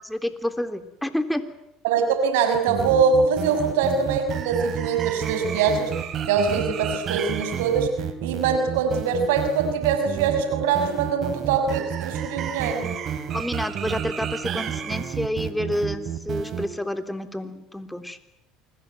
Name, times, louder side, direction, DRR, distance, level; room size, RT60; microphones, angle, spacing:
voice 1, 0.0-1.4 13.3-18.2, left 1 dB, 5° left, 9 dB, 3.3 m, -29 dB
voice 2, 1.8-5.9 6.2-7.9 8.2-12.9, right 5 dB, 80° right, 7 dB, 6.3 m, -23 dB
sound 1, 2.5-16.7, right 8 dB, 50° right, 3.2 m, -30 dB
28.5 x 21.0 x 9.5 m, 0.82 s
hypercardioid pair, 75°, 0 cm